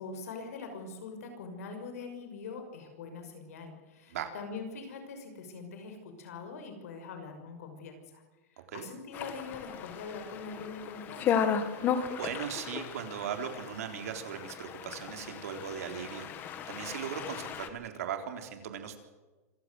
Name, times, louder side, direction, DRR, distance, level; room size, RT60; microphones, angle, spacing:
voice 1, 0.0-8.2 8.5-11.5, left 4 dB, 70° left, 6 dB, 6.1 m, -43 dB
sound 1, 9.1-17.7, left 7 dB, 25° left, 1.9 m, -35 dB
voice 2, 12.2-19.0, right 8 dB, 65° right, 6 dB, 3.9 m, -38 dB
26.5 x 16.0 x 7.9 m, 1.2 s
supercardioid pair, 170°, 8 cm